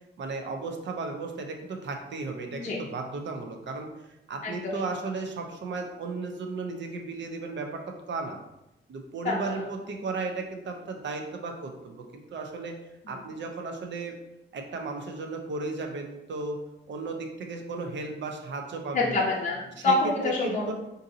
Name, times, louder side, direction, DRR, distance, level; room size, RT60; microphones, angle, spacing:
voice 1, 0.2-3.9 4.3-8.4 8.9-12.0 12.3-12.8 13.1-14.2 14.5-16.6 16.9-19.2 19.8-19.9 20.4-20.7, right 3 dB, 65° right, 4 dB, 0.6 m, -35 dB
voice 2, 4.4-4.8 9.2-9.3 13.1-13.2 18.9-20.7, left 3 dB, 40° left, -3 dB, 0.5 m, -27 dB
3.8 x 2.6 x 2.6 m, 0.90 s
wide cardioid pair, 140°, 20 cm